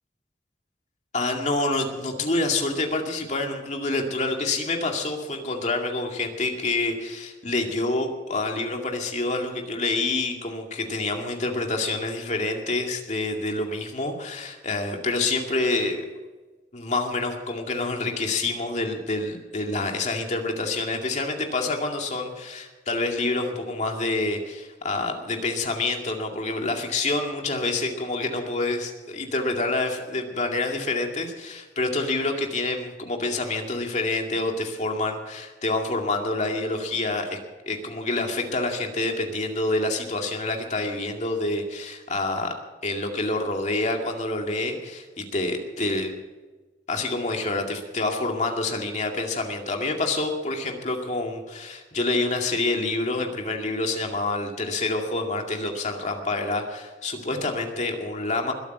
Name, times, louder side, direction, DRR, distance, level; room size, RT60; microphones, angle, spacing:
voice 1, 1.1-16.1 16.7-37.4 37.7-42.5 42.8-46.1 46.9-58.5, left 2 dB, 40° left, 2 dB, 2.3 m, -27 dB
21.0 x 8.7 x 6.1 m, 1.3 s
head